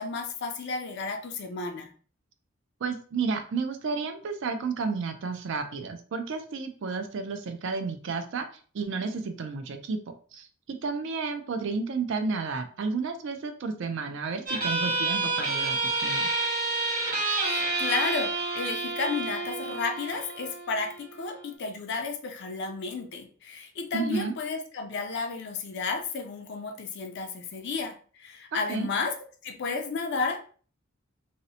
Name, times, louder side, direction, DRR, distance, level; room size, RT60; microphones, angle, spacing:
voice 1, 0.0-1.9 17.4-29.1 29.4-30.4, left 4 dB, 55° left, 4 dB, 0.4 m, -32 dB
voice 2, 2.8-8.4 8.7-10.0 10.3-16.3 23.9-24.3 28.5-28.9, right 4 dB, 60° right, 7 dB, 0.4 m, -32 dB
sound 1, 14.5-21.5, right 3 dB, 45° right, 1.2 m, -29 dB
2.7 x 2.0 x 2.6 m, 0.43 s
head